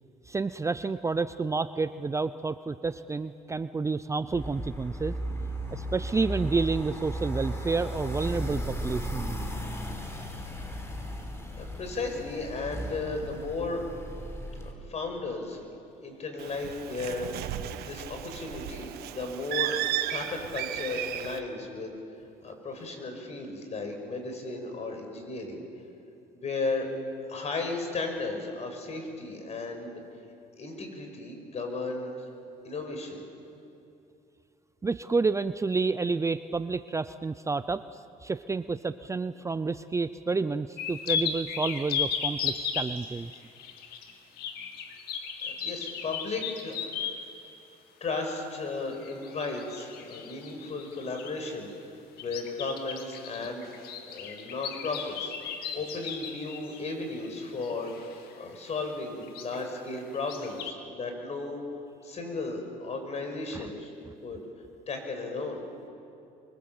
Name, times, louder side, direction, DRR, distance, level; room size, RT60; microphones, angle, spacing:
voice 1, 0.3-5.1 5.7-9.4 34.8-37.9 38.2-43.3 63.5-63.7, right 4 dB, 20° right, 13 dB, 0.6 m, -29 dB
sound 1, 4.3-14.7, equal, 15° left, 4.2 m, -35 dB
voice 2, 11.6-13.9 14.6-15.7 16.0-17.3 17.8-21.9 22.4-25.6 26.3-26.9 27.3-30.0 30.6-32.2 32.6-33.2 45.4-46.8 48.0-51.7 52.2-61.6 62.0-63.9 64.2-64.4 64.9-65.6, left 3 dB, 45° left, 4 dB, 5.8 m, -35 dB
Bird, 16.4-21.4, right 12 dB, 75° right, 1.4 m, -34 dB
sound 2, 40.8-47.3 48.9-51.5 52.2-58.3 58.7-58.9 59.2-59.6 60.1-60.7, left 7 dB, 75° left, 2.1 m, -36 dB
25.0 x 24.0 x 7.9 m, 2.7 s
cardioid pair, 95°, 16 cm